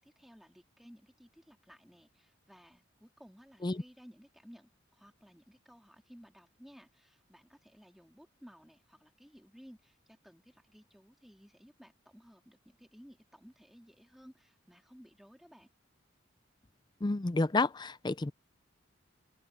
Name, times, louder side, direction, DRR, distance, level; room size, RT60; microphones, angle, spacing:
voice 1, 0.0-15.7, equal, ahead, 2.9 m, -57 dB
voice 2, 17.0-18.3, left 3 dB, 20° left, 0.4 m, -30 dB
open air
head